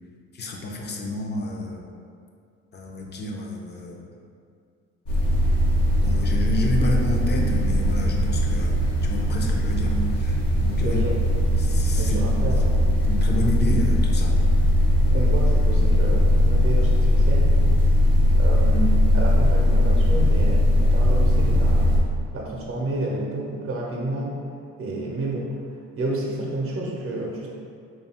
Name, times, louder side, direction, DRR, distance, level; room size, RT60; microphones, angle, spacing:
voice 1, 0.3-1.9 2.7-4.1 6.0-8.7 9.0-11.0 11.6-12.2 13.1-14.4, left 1 dB, 35° left, 0 dB, 0.6 m, -30 dB
sound 1, 5.0-22.0, equal, 85° left, 0.9 m, -19 dB
voice 2, 10.8-11.2 12.0-12.7 15.1-17.5 18.4-21.9 22.3-24.4 24.8-25.5 26.0-27.5, right 2 dB, 45° right, -2 dB, 0.7 m, -30 dB
3.3 x 2.3 x 4.2 m, 2.3 s
cardioid pair, 90°, 30 cm